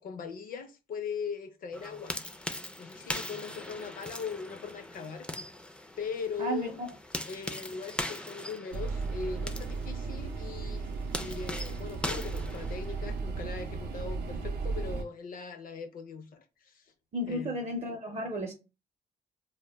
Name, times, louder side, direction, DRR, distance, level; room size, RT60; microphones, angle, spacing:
voice 1, 0.0-2.2 2.8-5.4 6.0-6.8 7.2-10.9 11.2-16.8 17.3-17.7, left 5 dB, 60° left, 0.5 m, -40 dB
sound 1, 1.7-13.2, left 1 dB, 5° left, 0.3 m, -41 dB
voice 2, 6.4-6.9 17.1-18.5, equal, 40° right, 0.6 m, -33 dB
sound 2, 8.7-15.0, right 4 dB, 85° right, 0.5 m, -35 dB
2.1 x 2.1 x 3.3 m
cardioid pair, 100°, 17 cm